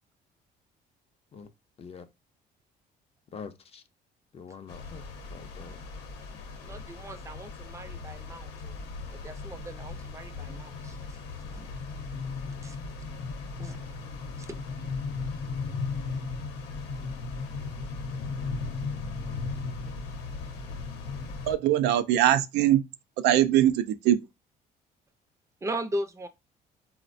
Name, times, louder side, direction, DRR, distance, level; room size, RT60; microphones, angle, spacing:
voice 1, 3.3-3.8 4.3-5.0 5.3-5.8, left 6 dB, 35° left, 0.5 m, -44 dB
sound 1, 4.7-21.5, left 4 dB, 85° left, 0.7 m, -37 dB
voice 2, 6.6-8.7 9.1-11.2 11.6-11.7 12.2-12.9 13.6-13.8 14.4-15.3 25.6-26.3, right 1 dB, 15° right, 0.5 m, -39 dB
voice 3, 21.5-22.9 23.2-24.2, right 12 dB, 85° right, 0.4 m, -22 dB
4.0 x 2.1 x 2.5 m
cardioid pair, 110°, 17 cm